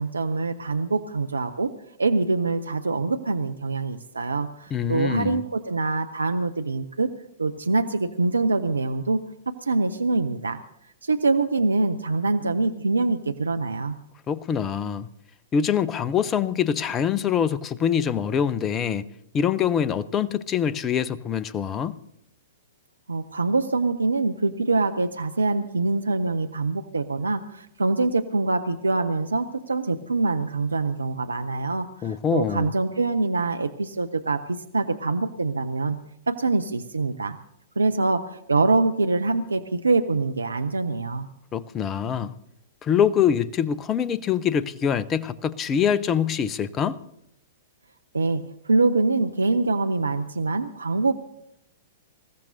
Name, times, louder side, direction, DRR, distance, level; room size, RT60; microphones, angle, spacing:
voice 1, 0.0-1.7 2.0-7.1 7.4-9.2 9.5-10.6 11.0-14.0 23.1-36.0 36.3-37.4 37.8-41.3 48.1-51.1, right 3 dB, 80° right, 0.6 m, -24 dB
voice 2, 4.7-5.4 14.3-15.1 15.5-19.1 19.3-22.0 32.0-32.7 41.5-42.3 42.8-47.0, left 8 dB, 25° left, 0.7 m, -24 dB
26.0 x 15.0 x 2.7 m
figure-of-eight pair, 105°, 0 cm